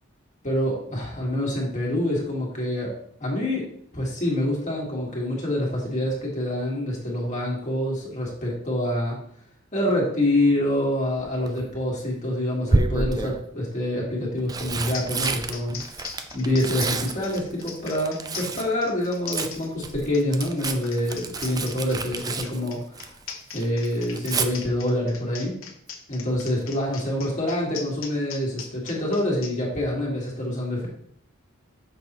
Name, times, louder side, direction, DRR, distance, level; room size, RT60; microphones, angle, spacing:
voice 1, 0.4-2.9 3.2-3.6 3.9-9.2 9.7-15.8 16.3-23.1 23.5-25.6 26.1-30.9, left 1 dB, 35° left, -3 dB, 1.7 m, -26 dB
Tearing, 11.2-11.7 12.7-13.4 14.2-18.7 19.0-23.3 23.6-24.5 26.3-26.6 26.9-27.0, right 3 dB, 20° right, 0.4 m, -29 dB
sound 1, 14.6-14.7 14.9-29.5, left 6 dB, 70° left, 0.9 m, -39 dB
6.2 x 5.3 x 3.0 m, 0.66 s
head